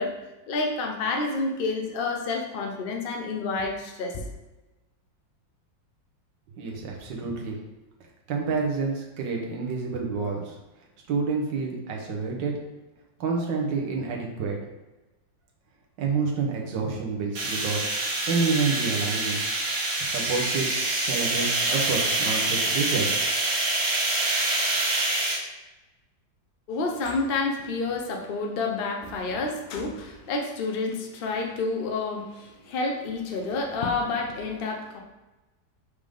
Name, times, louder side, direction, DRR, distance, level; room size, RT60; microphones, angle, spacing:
voice 1, 0.0-4.3 26.7-35.0, left 3 dB, 50° left, 2 dB, 0.7 m, -29 dB
voice 2, 6.6-7.6 8.3-10.6 11.1-12.5 13.2-14.6 16.0-17.8 18.2-19.4 20.0-23.1, right 4 dB, 75° right, 0 dB, 1.7 m, -28 dB
sound 1, 17.4-25.4, right 2 dB, 60° right, 1.8 m, -26 dB
5.2 x 5.1 x 3.7 m, 1.1 s
omnidirectional pair, 2.0 m